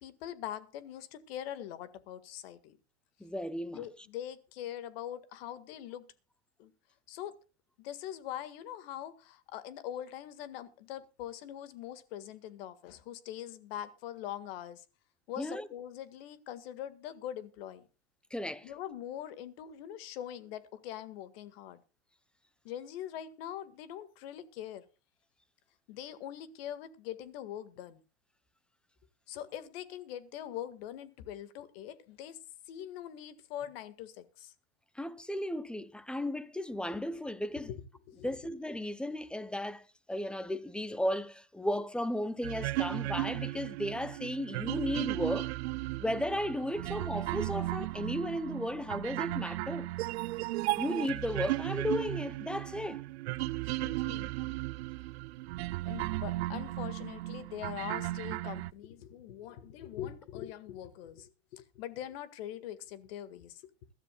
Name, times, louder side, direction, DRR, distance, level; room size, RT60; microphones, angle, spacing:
voice 1, 0.0-2.8 3.7-6.1 6.6-6.7 7.1-7.4 7.8-14.8 15.3-17.9 18.6-21.8 22.7-24.8 25.9-28.0 29.3-32.4 32.7-34.5 37.6-37.8 38.1-38.4 53.4-54.3 55.9-63.6, left 11 dB, 65° left, 1.8 m, -43 dB
voice 2, 3.2-3.9 15.4-15.7 18.3-18.7 34.9-37.7 38.2-45.5 46.0-49.9 50.8-53.0, left 1 dB, 5° left, 0.7 m, -35 dB
sound 1, 42.4-58.7, right 18 dB, 70° right, 0.6 m, -35 dB
22.0 x 13.0 x 2.3 m
supercardioid pair, 130°, 33 cm